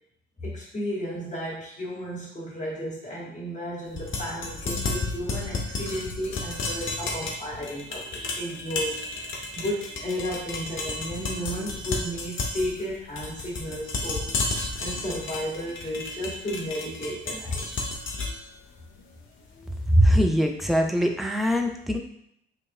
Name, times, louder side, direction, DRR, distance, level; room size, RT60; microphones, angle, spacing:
voice 1, 0.4-17.6, equal, 25° left, -5 dB, 1.4 m, -33 dB
sound 1, 3.9-19.9, left 2 dB, 40° left, 0.7 m, -33 dB
voice 2, 19.9-22.0, equal, ahead, 3 dB, 0.5 m, -21 dB
4.2 x 3.1 x 2.2 m, 0.72 s
figure-of-eight pair, 45°, 30 cm